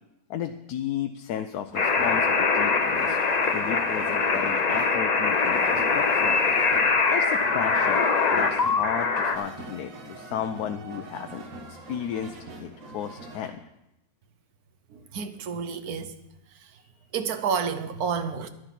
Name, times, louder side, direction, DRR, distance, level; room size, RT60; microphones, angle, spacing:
voice 1, 0.3-3.2 3.5-6.4 7.1-8.1 8.3-13.6, left 9 dB, 75° left, 1.1 m, -34 dB
sound 1, 1.7-13.5, right 3 dB, 55° right, 1.7 m, -42 dB
sound 2, 1.8-9.4, left 4 dB, 40° left, 0.6 m, -23 dB
voice 2, 14.9-16.2 17.1-18.5, right 6 dB, 70° right, 1.3 m, -30 dB
11.0 x 10.0 x 5.8 m
omnidirectional pair, 1.7 m